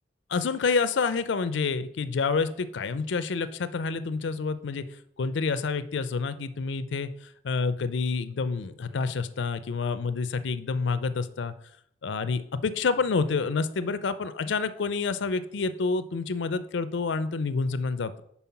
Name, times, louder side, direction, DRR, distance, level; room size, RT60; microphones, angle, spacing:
voice 1, 0.3-4.8 5.2-7.1 7.4-11.5 12.0-18.2, left 4 dB, 85° left, 14 dB, 0.5 m, -28 dB
5.6 x 4.5 x 5.6 m, 0.72 s
head